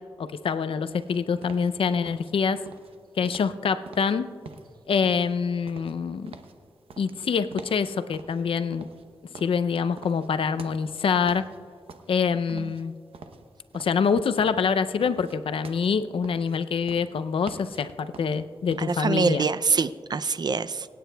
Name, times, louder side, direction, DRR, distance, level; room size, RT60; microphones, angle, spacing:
voice 1, 0.2-2.6 3.2-4.3 4.9-6.3 7.0-8.9 9.4-11.5 12.1-12.9 13.7-19.5, left 6 dB, 75° left, 11 dB, 0.5 m, -25 dB
sound 1, 0.9-19.1, right 4 dB, 90° right, 0.8 m, -47 dB
voice 2, 18.8-20.9, right 4 dB, 50° right, 14 dB, 0.4 m, -25 dB
25.5 x 9.3 x 2.3 m, 2.2 s
cardioid pair, 75°, 9 cm